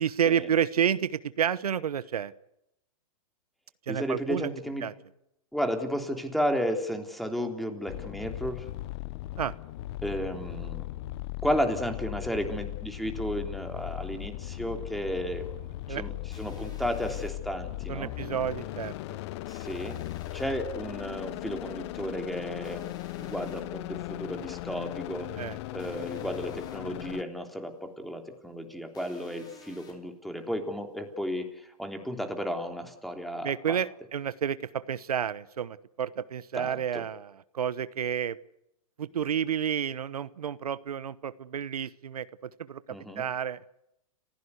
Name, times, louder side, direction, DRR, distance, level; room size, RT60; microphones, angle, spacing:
voice 1, 0.0-2.3 3.9-4.5 4.8-4.9 9.4-9.5 15.9-16.0 17.9-19.2 25.4-25.6 33.4-38.4 39.0-43.6, right 8 dB, 85° right, 17 dB, 1.0 m, -30 dB
voice 2, 3.9-4.9 5.5-8.7 10.0-10.9 11.4-15.5 15.9-18.1 19.5-20.0 20.3-22.9 23.2-25.4 25.7-33.8 36.5-37.0 42.9-43.3, equal, ahead, 5 dB, 3.3 m, -33 dB
sound 1, 7.9-27.2, left 17 dB, 45° left, 0.9 m, -38 dB
sound 2, 16.3-17.3 19.5-20.5 22.6-23.6 25.8-26.8 28.9-29.9, left 5 dB, 20° left, 6.1 m, -52 dB
30.0 x 16.0 x 8.3 m, 0.84 s
hypercardioid pair, 130°, 19 cm